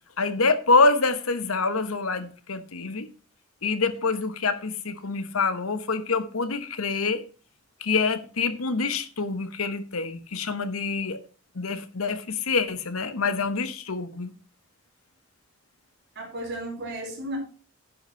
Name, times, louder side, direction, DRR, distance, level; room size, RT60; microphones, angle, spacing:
voice 1, 0.2-3.1 3.6-7.2 7.8-11.2 11.5-14.3, left 4 dB, 85° left, 1.2 m, -26 dB
voice 2, 16.2-17.4, right 1 dB, 55° right, 4.3 m, -34 dB
10.5 x 6.0 x 5.6 m
head